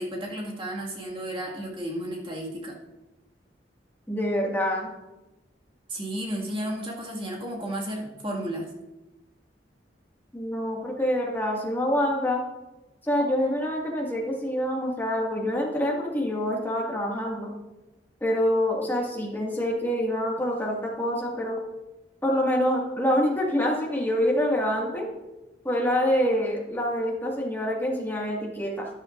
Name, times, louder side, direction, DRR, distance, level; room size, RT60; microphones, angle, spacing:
voice 1, 0.0-2.7 5.9-8.7, right 1 dB, 30° right, -2 dB, 2.0 m, -33 dB
voice 2, 4.1-4.9 10.3-12.4 13.0-17.5 18.2-21.6 22.2-25.1 25.6-28.9, equal, 10° left, -2 dB, 1.9 m, -26 dB
13.0 x 10.5 x 2.6 m, 1.0 s
head